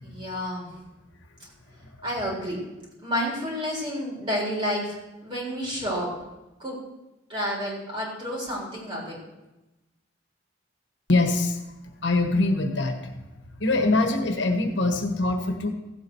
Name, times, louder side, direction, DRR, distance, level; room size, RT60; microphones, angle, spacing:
voice 1, 0.0-0.7 2.0-2.6 3.0-6.1 6.6-6.8 7.3-9.2, equal, 25° right, -4 dB, 4.0 m, -30 dB
voice 2, 11.1-11.6 11.8-13.3 13.6-15.7, left 2 dB, 65° left, 4 dB, 1.4 m, -24 dB
15.0 x 8.5 x 4.7 m, 1.0 s
head